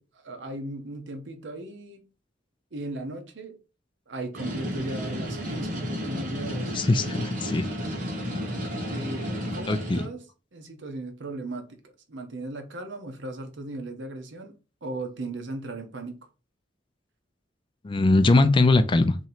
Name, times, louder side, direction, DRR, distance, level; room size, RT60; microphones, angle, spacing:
voice 1, 0.0-2.0 2.7-3.6 4.1-6.7 8.9-10.2 10.5-11.7 12.1-14.5 14.8-16.2, right 2 dB, 70° right, 0.8 m, -37 dB
sound 1, 4.3-10.0, equal, 45° right, 1.2 m, -32 dB
voice 2, 6.7-7.7 9.7-10.0 17.8-19.1, left 2 dB, 25° left, 0.3 m, -21 dB
3.0 x 2.7 x 4.0 m
head